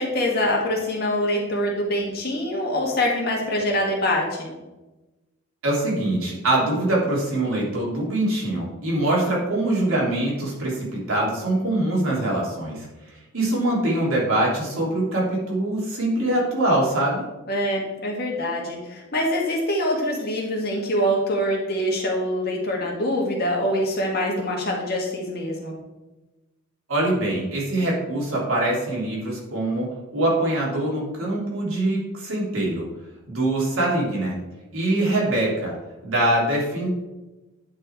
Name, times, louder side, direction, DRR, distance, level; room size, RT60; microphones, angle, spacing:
voice 1, 0.0-4.5 17.5-25.7, left 1 dB, 45° left, -1 dB, 1.9 m, -24 dB
voice 2, 5.6-12.9 13.3-17.2 26.9-29.9 30.1-32.9 33.3-34.4 34.7-35.8 36.0-36.9, right 1 dB, 75° right, -4 dB, 3.2 m, -23 dB
9.7 x 4.8 x 4.7 m, 1.1 s
head